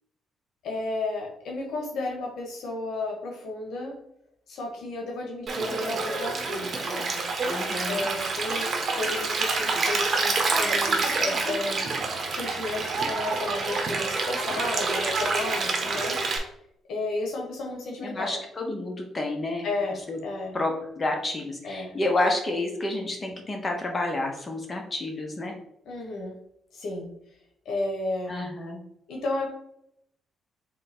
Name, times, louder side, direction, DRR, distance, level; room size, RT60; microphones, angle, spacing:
voice 1, 0.6-3.9 4.5-7.3 7.8-11.9 12.3-16.2 16.9-18.4 19.6-20.6 21.6-21.9 25.8-26.4 26.7-27.1 27.6-28.4 29.1-29.5, left 2 dB, 75° left, 0 dB, 1.2 m, -33 dB
Stream, 5.5-16.4, right 3 dB, 45° right, 1.1 m, -27 dB
voice 2, 7.4-8.1 18.0-19.7 20.1-20.2 20.5-25.5 28.3-28.8, left 2 dB, 30° left, 2 dB, 0.9 m, -29 dB
3.7 x 3.3 x 4.3 m, 0.76 s
cardioid pair, 90°, 0 cm